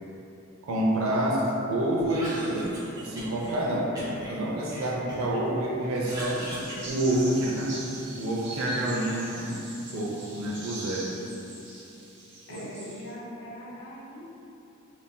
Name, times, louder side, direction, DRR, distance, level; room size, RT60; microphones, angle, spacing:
voice 1, 0.7-2.7 3.0-3.8 4.3-6.4 6.8-7.8 8.1-9.7 9.9-11.1 12.5-12.6, right 1 dB, 75° right, -4 dB, 0.4 m, -28 dB
Cough, 2.0-3.6 4.0-5.4 5.8-7.7, right 1 dB, 20° right, 0.6 m, -39 dB
voice 2, 3.7-4.1 12.5-14.2, equal, 60° left, -3 dB, 0.5 m, -41 dB
sound 1, 6.0-13.1, right 2 dB, 55° right, 0.8 m, -42 dB
3.6 x 2.5 x 2.2 m, 2.8 s
head